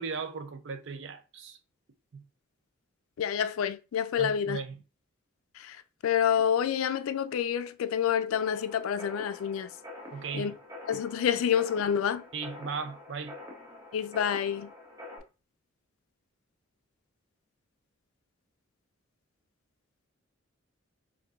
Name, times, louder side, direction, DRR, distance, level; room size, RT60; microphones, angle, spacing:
voice 1, 0.0-1.6 2.1-2.3 4.2-4.8 10.1-10.6 12.3-13.4, right 5 dB, 60° right, 0.5 m, -37 dB
voice 2, 3.2-4.6 5.6-5.8 6.0-9.7 10.3-10.5 10.9-12.2 13.9-14.7, left 8 dB, 80° left, 0.3 m, -28 dB
sound 1, 8.3-15.2, left 2 dB, 15° right, 0.8 m, -47 dB
4.6 x 2.6 x 2.4 m
head